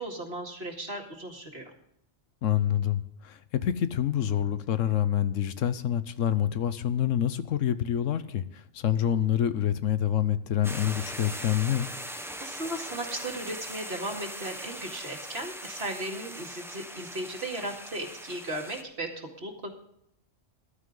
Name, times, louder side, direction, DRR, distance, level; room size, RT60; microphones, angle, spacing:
voice 1, 0.0-1.7 12.4-19.7, right 1 dB, 50° right, 2 dB, 2.4 m, -36 dB
voice 2, 2.4-11.9, left 10 dB, 75° left, 13 dB, 1.1 m, -27 dB
sound 1, 10.6-18.8, equal, ahead, 0.7 m, -40 dB
14.5 x 11.5 x 3.8 m, 0.74 s
omnidirectional pair, 1.3 m